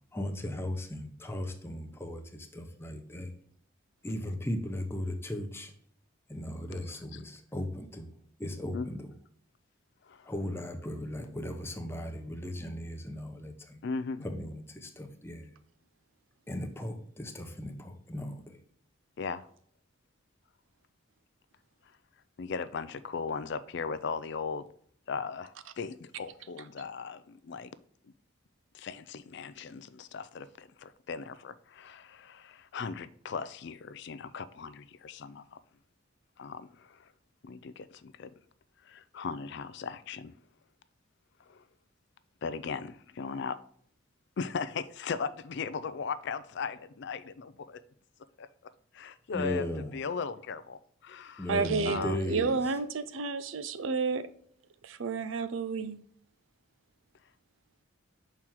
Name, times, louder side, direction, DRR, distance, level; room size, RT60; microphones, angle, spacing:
voice 1, 0.1-3.3 4.0-5.7 6.3-8.1 8.4-9.0 10.3-13.8 14.2-15.5 16.5-18.4 49.3-49.9 51.4-52.6, left 1 dB, 10° left, 0.8 m, -37 dB
voice 2, 6.7-7.2 8.7-8.9 10.0-10.3 13.8-14.3 19.2-19.5 22.4-24.7 25.1-27.7 28.7-35.6 36.4-37.1 37.4-38.3 38.8-40.3 41.5-41.6 42.4-43.6 44.4-47.8 48.4-48.5 48.9-51.6 51.9-52.2, left 5 dB, 55° left, 0.4 m, -38 dB
voice 3, 51.5-54.2 54.8-56.0, right 4 dB, 70° right, 0.5 m, -31 dB
6.0 x 4.4 x 3.7 m
head